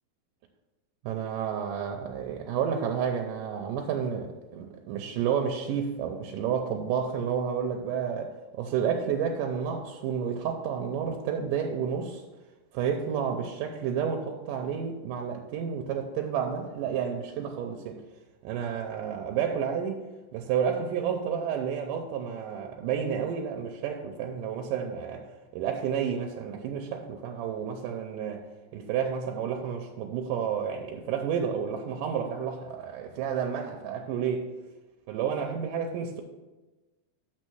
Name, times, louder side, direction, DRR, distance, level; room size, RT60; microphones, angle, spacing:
voice 1, 1.0-12.2 12.7-18.0 18.4-20.0 20.3-25.3 25.5-28.5 28.7-34.5 35.1-36.2, right 7 dB, 85° right, 2.3 m, -30 dB
6.8 x 5.4 x 6.1 m
omnidirectional pair, 3.8 m